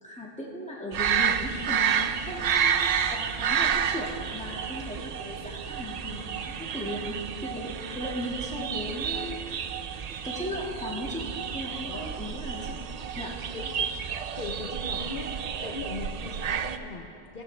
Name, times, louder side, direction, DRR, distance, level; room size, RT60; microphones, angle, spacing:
voice 1, 0.0-7.2 7.4-9.8 10.2-11.3 11.5-12.8 13.2-13.3, left 1 dB, 5° left, -4 dB, 1.8 m, -37 dB
sound 1, 0.9-16.8, right 8 dB, 55° right, 0.5 m, -30 dB
voice 2, 13.5-13.9 14.4-15.3 15.6-17.4, left 3 dB, 55° left, 0 dB, 1.0 m, -39 dB
15.5 x 15.0 x 3.3 m, 2.6 s
omnidirectional pair, 1.1 m